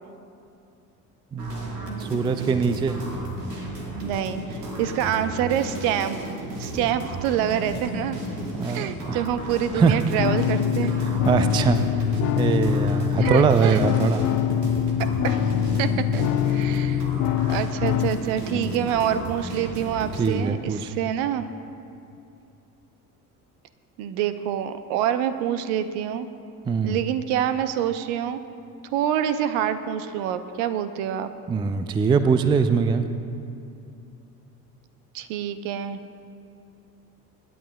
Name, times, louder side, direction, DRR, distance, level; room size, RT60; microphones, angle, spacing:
voice 1, 1.3-3.0 8.5-9.2 9.7-10.0 11.2-11.8 12.3-14.2 18.5-18.7 20.2-20.9 26.7-27.0 31.5-33.1, right 5 dB, 10° right, 10 dB, 0.4 m, -22 dB
sound 1, 1.4-20.3, right 1 dB, 85° right, 1.6 m, -34 dB
voice 2, 3.9-6.2 6.6-8.2 8.7-10.9 13.2-13.8 15.2-15.5 15.8-17.1 17.5-21.4 24.0-26.3 26.8-28.4 28.9-31.3 35.1-36.0, right 10 dB, 60° right, 11 dB, 0.8 m, -26 dB
sound 2, 10.2-18.2, left 10 dB, 40° left, 0.5 m, -24 dB
25.0 x 10.0 x 2.2 m, 2.6 s
figure-of-eight pair, 60°, 47 cm